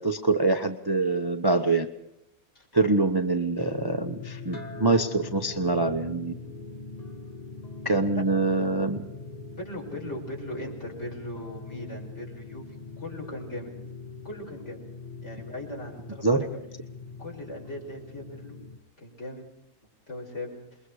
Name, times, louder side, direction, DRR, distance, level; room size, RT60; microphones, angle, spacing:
voice 1, 0.0-1.9 2.7-6.3 7.8-9.0 16.2-16.5, right 3 dB, 20° right, 6 dB, 0.9 m, -24 dB
sound 1, 3.6-18.8, left 3 dB, 25° left, 1.6 m, -42 dB
voice 2, 9.6-13.7 14.2-14.8 15.2-16.5 17.2-18.6 19.0-19.4 20.1-20.6, left 1 dB, 50° left, 0 dB, 6.0 m, -39 dB
28.0 x 22.0 x 4.9 m, 0.80 s
omnidirectional pair, 1.6 m